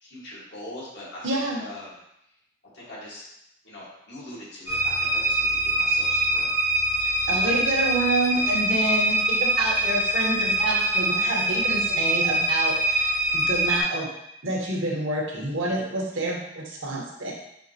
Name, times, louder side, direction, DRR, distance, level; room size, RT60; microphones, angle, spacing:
voice 1, 0.0-1.9 2.7-3.2 3.6-6.5 7.4-7.6, left 1 dB, 60° left, -7 dB, 1.7 m, -41 dB
voice 2, 1.2-1.6 7.0-14.1 14.4-17.3, right 2 dB, 85° right, -2 dB, 1.2 m, -28 dB
sound 1, 4.7-13.8, right 1 dB, 15° right, 1.4 m, -24 dB
5.6 x 3.0 x 2.9 m, 0.80 s
head